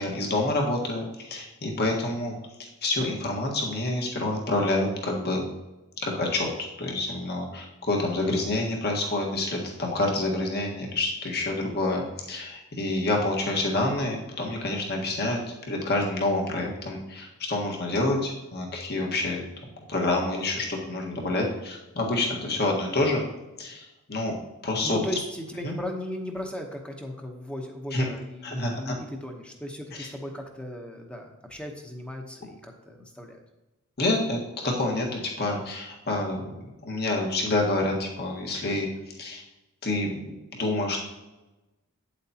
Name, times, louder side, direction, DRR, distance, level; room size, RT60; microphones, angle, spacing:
voice 1, 0.0-2.3 2.8-5.5 6.0-6.5 6.8-19.4 19.9-23.2 23.6-24.3 24.6-25.0 25.6-25.7 27.9-28.0 28.4-28.9 29.9-30.1 34.0-36.5 36.8-39.4 39.8-41.0, left 2 dB, 50° left, 0 dB, 1.5 m, -28 dB
voice 2, 24.8-33.4, left 1 dB, 5° left, 2 dB, 0.9 m, -37 dB
8.3 x 8.0 x 2.8 m, 1.1 s
head